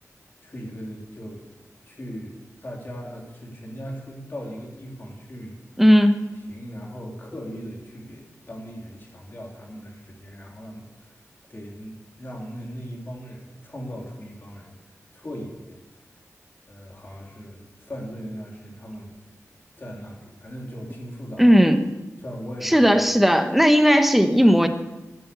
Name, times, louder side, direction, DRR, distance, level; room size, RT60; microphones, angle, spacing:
voice 1, 0.4-1.5 1.8-5.6 6.5-11.1 11.5-14.7 15.1-15.8 16.7-19.1 19.8-21.5 22.2-23.0, equal, 40° left, -1 dB, 3.1 m, -38 dB
voice 2, 5.8-6.3 21.4-21.9 22.6-24.7, equal, 5° right, 8 dB, 1.0 m, -16 dB
12.0 x 8.8 x 6.9 m, 1.1 s
wide cardioid pair, 105°, 6 cm